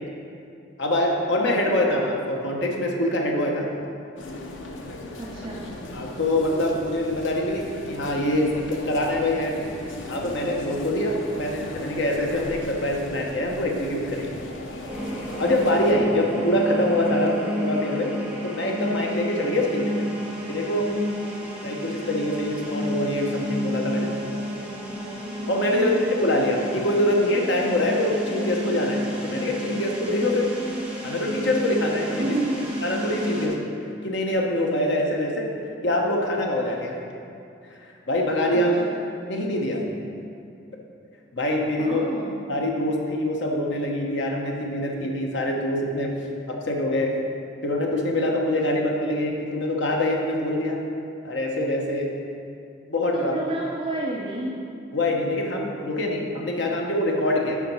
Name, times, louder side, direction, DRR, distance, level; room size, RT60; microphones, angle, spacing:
voice 1, 0.8-3.7 5.9-9.5 10.1-14.4 15.4-18.1 18.4-20.0 20.5-20.9 21.6-24.1 25.5-25.9 26.2-30.5 31.0-32.2 32.8-33.5 34.0-35.5 35.8-37.0 37.7-38.7 39.3-39.8 41.3-42.0 42.5-46.1 46.5-47.1 47.6-50.8 51.2-52.1 52.9-53.3 54.9-57.6, left 1 dB, 70° left, 0 dB, 1.1 m, -24 dB
sound 1, 4.2-15.9, left 1 dB, 90° left, 0.8 m, -37 dB
voice 2, 5.2-5.6 25.7-26.0 32.2-32.6 38.5-39.0 41.8-42.3 53.1-54.6, right 2 dB, 25° right, -5 dB, 0.7 m, -30 dB
sound 2, 14.9-33.5, equal, 10° right, 1.2 m, -31 dB
7.4 x 5.2 x 5.5 m, 2.5 s
head